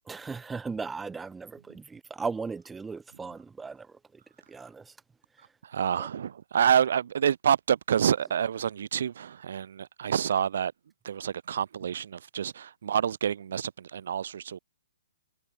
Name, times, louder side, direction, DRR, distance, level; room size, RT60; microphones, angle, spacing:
voice 1, 0.0-4.2 4.5-5.0 5.4-5.5 6.0-6.1, right 4 dB, 5° right, 6.7 m, -37 dB
voice 2, 5.6-10.7 11.0-14.6, right 8 dB, 55° right, 3.5 m, -28 dB
hypercardioid pair, 170°, 0 cm